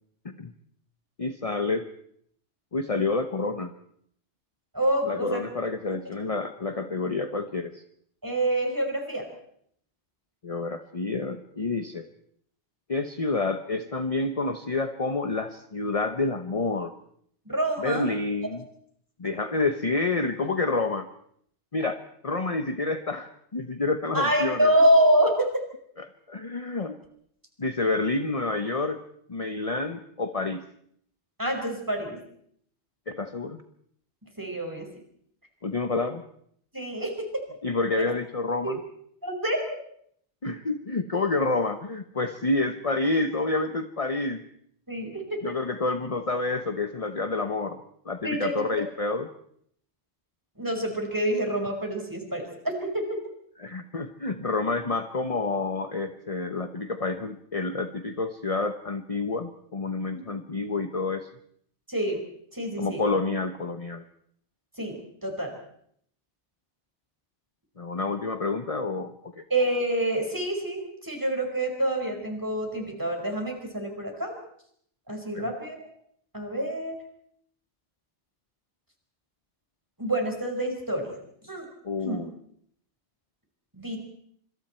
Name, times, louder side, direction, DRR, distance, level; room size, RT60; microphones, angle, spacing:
voice 1, 1.2-1.9 2.7-3.7 5.0-7.8 10.4-12.1 12.9-16.9 17.8-18.6 19.2-21.1 21.7-24.7 26.0-27.0 27.6-29.0 29.3-30.6 33.1-33.6 35.6-36.2 37.6-38.8 40.4-44.4 45.4-49.3 53.6-61.3 62.8-64.0 67.8-69.4 75.3-75.5 81.8-82.3, left 3 dB, 30° left, 8 dB, 1.0 m, -28 dB
voice 2, 4.7-5.5 5.9-6.0 8.2-9.3 17.5-18.1 24.1-25.6 31.4-32.2 34.4-34.9 36.7-37.4 38.6-38.7 39.2-39.6 44.9-45.5 48.2-48.6 50.6-53.0 60.1-60.2 61.9-62.2 62.5-63.0 64.8-65.5 69.5-74.4 75.1-75.8 76.3-77.0 80.0-81.2 81.4-81.7 82.0-82.2 83.7-84.0, right 1 dB, 15° right, 2 dB, 5.3 m, -26 dB
26.0 x 26.0 x 4.5 m, 0.67 s
omnidirectional pair, 1.2 m